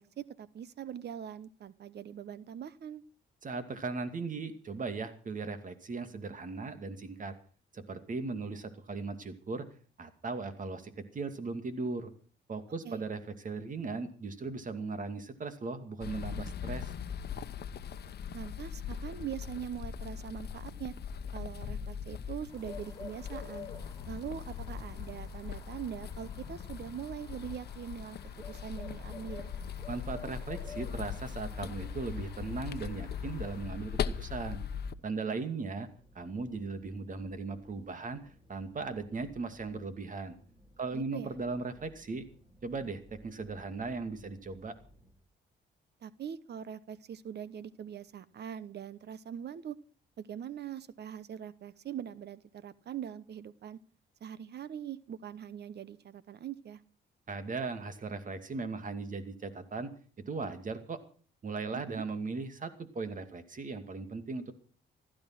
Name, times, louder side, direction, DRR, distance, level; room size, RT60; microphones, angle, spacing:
voice 1, 0.0-3.0 12.8-13.0 18.3-20.9 21.3-23.7 24.1-28.2 28.5-29.5 35.3-35.6 40.9-41.4 46.0-49.8 50.2-53.8 54.2-56.8 61.7-62.0, right 9 dB, 55° right, 18 dB, 1.0 m, -42 dB
voice 2, 3.4-7.3 7.7-9.7 10.0-12.1 12.5-16.9 29.9-34.6 35.0-35.9 36.1-40.3 40.8-42.2 42.6-44.8 57.3-59.9 60.3-61.0 61.4-64.5, right 4 dB, 40° right, 10 dB, 2.4 m, -38 dB
sound 1, 16.0-34.9, left 7 dB, 55° left, 1.0 m, -40 dB
sound 2, 22.5-33.6, left 4 dB, 15° left, 4.9 m, -51 dB
sound 3, 35.7-45.1, equal, 10° right, 4.0 m, -60 dB
15.5 x 12.5 x 6.0 m, 0.41 s
cardioid pair, 90°, 20 cm